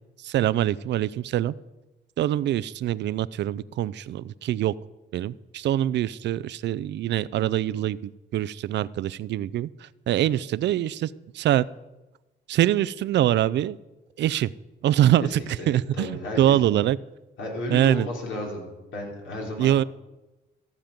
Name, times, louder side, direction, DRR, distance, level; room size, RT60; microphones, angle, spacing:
voice 1, 0.2-1.5 2.2-4.8 5.1-11.7 12.5-13.8 14.2-14.5 14.8-15.4 15.7-17.0 17.7-18.1 19.6-19.8, right 12 dB, 65° right, 17 dB, 0.4 m, -24 dB
voice 2, 15.6-16.6 17.4-18.7 18.9-19.9, left 1 dB, 70° left, -1 dB, 3.3 m, -33 dB
14.0 x 7.4 x 5.2 m, 1.1 s
cardioid pair, 90°, 20 cm